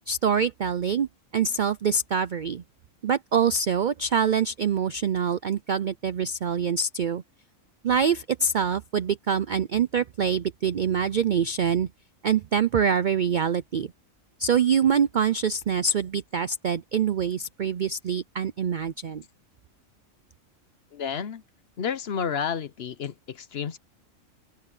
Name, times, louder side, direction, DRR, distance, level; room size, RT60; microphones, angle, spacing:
voice 1, 0.1-1.1 1.3-2.6 3.0-7.2 7.8-11.9 12.2-13.9 14.4-19.2, right 6 dB, 60° right, 0.5 m, -25 dB
voice 2, 20.9-21.4 21.8-23.8, left 7 dB, 55° left, 0.9 m, -31 dB
omnidirectional pair, 1.4 m